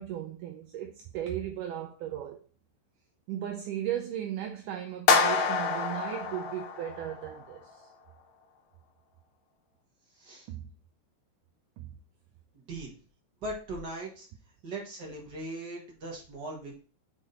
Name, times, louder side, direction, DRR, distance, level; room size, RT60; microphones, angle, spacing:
voice 1, 0.0-2.4 3.3-7.8 10.5-10.7 11.8-11.9, right 11 dB, 80° right, 2.0 m, -36 dB
sound 1, 5.1-7.3, left 5 dB, 75° left, 2.5 m, -27 dB
voice 2, 10.1-10.5 12.5-12.9 13.4-14.3 14.6-16.8, right 1 dB, 45° right, 1.4 m, -39 dB
5.9 x 4.9 x 3.9 m
omnidirectional pair, 4.1 m